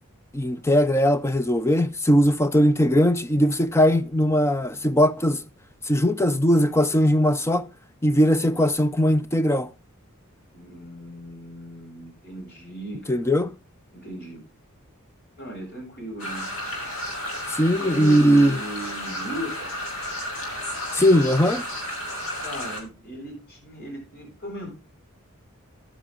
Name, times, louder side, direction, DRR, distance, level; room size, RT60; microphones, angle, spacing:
voice 1, 0.3-5.4 5.9-7.7 8.0-9.7 13.1-13.5 17.5-18.6 20.9-21.6, equal, 10° left, 0.5 m, -20 dB
voice 2, 10.5-13.3 13.9-14.4 15.4-16.5 17.8-19.9 22.4-24.7, right 1 dB, 50° left, 7.6 m, -37 dB
sound 1, 16.2-22.8, equal, 75° left, 4.7 m, -32 dB
11.5 x 9.6 x 3.9 m
head